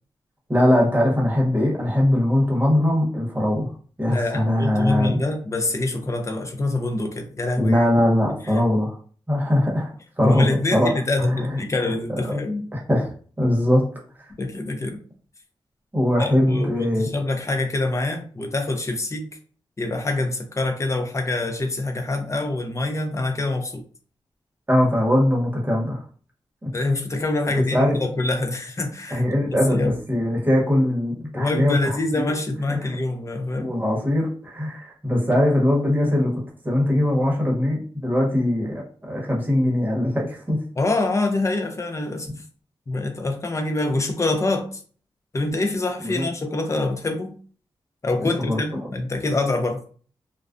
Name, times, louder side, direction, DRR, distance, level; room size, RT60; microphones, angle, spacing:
voice 1, 0.5-3.7 4.0-5.2 7.6-9.0 9.3-9.9 10.2-10.9 11.2-11.4 11.8-12.4 12.7-13.1 13.4-13.8 14.2-14.3 15.9-17.1 24.7-26.0 26.6-26.7 27.5-28.0 29.1-32.3 32.7-32.8 33.6-36.3 36.6-40.6 46.0-46.3 48.2-48.9, left 1 dB, 20° right, -2 dB, 1.0 m, -21 dB
voice 2, 4.1-7.8 10.2-12.7 14.4-15.0 16.2-19.3 19.8-23.8 26.7-29.2 29.7-29.9 31.3-33.7 40.8-42.3 42.9-44.8 45.3-47.3 48.0-49.8, left 2 dB, 35° left, 5 dB, 0.5 m, -25 dB
2.4 x 2.2 x 2.4 m, 0.43 s
cardioid pair, 70°, 9 cm